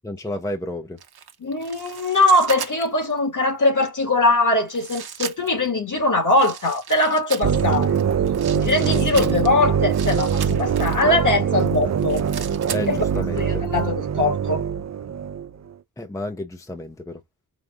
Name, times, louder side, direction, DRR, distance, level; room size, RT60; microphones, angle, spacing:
voice 1, 0.0-1.0 12.7-13.6 16.0-17.2, left 1 dB, 10° left, 0.6 m, -31 dB
sound 1, 1.0-3.1 3.9-4.0 4.7-5.7 6.3-11.1 11.6-13.4 13.6-13.8, right 8 dB, 75° right, 0.8 m, -36 dB
voice 2, 1.4-7.9 8.5-12.2 12.9-13.0 13.4-14.6, left 2 dB, 55° left, 1.9 m, -21 dB
sound 2, 7.4-15.5, right 7 dB, 45° right, 0.5 m, -23 dB
5.0 x 2.4 x 2.5 m
wide cardioid pair, 90°, 38 cm